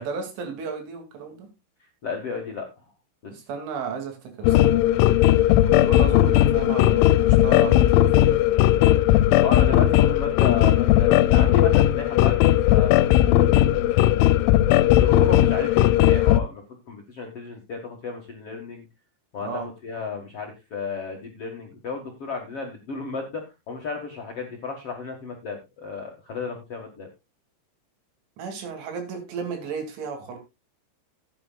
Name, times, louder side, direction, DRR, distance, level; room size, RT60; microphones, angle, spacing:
voice 1, 0.0-1.5 3.3-4.8 5.6-8.3 19.4-19.7 28.4-30.4, right 5 dB, 80° right, 5 dB, 5.1 m, -34 dB
voice 2, 2.0-2.7 3.2-3.4 9.4-14.2 14.7-18.9 19.3-27.1, left 5 dB, 55° left, 1 dB, 1.6 m, -33 dB
sound 1, 4.4-16.4, left 13 dB, 85° left, 3.0 m, -17 dB
16.0 x 9.7 x 2.4 m, 0.23 s
omnidirectional pair, 5.4 m